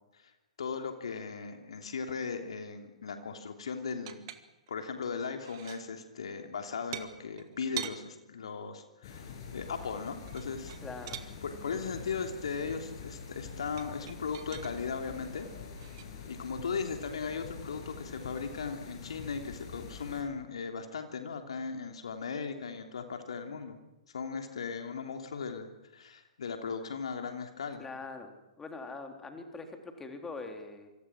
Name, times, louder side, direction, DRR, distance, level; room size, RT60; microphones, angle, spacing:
voice 1, 0.6-4.3 4.7-10.8 11.4-15.5 16.3-23.8 24.1-27.8, left 5 dB, 60° left, 5 dB, 3.1 m, -37 dB
sound 1, 3.9-4.8 5.2-5.9 6.9-8.0 10.2-11.3 13.8-14.7 15.8-16.0, right 13 dB, 45° right, 2.0 m, -43 dB
sound 2, 9.0-20.2, left 5 dB, 45° left, 7.4 m, -45 dB
voice 2, 10.8-11.2 11.6-11.8 27.8-30.9, left 3 dB, 10° left, 4 dB, 3.5 m, -43 dB
27.0 x 26.0 x 6.2 m, 1.0 s
figure-of-eight pair, 110°, 3 cm